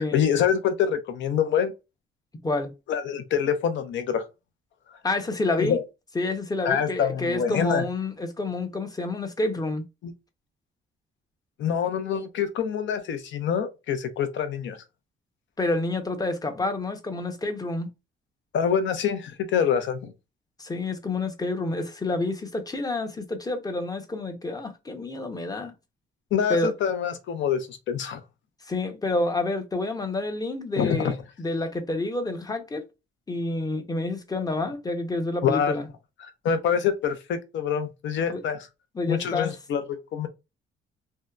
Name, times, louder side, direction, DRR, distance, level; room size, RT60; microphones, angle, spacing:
voice 1, 0.0-1.7 2.9-4.2 4.9-5.0 5.6-5.8 6.6-7.8 10.0-10.1 11.6-14.8 18.5-20.1 26.3-28.2 30.8-31.1 35.4-35.8 36.2-38.7 39.1-40.3, left 8 dB, 70° left, 0.6 m, -26 dB
voice 2, 5.0-5.8 6.2-9.8 15.6-17.9 20.6-25.7 26.5-26.7 28.6-32.8 33.3-35.9 38.3-38.4 38.9-39.5, left 2 dB, 20° left, 0.6 m, -28 dB
2.7 x 2.2 x 2.3 m
cardioid pair, 90°, 20 cm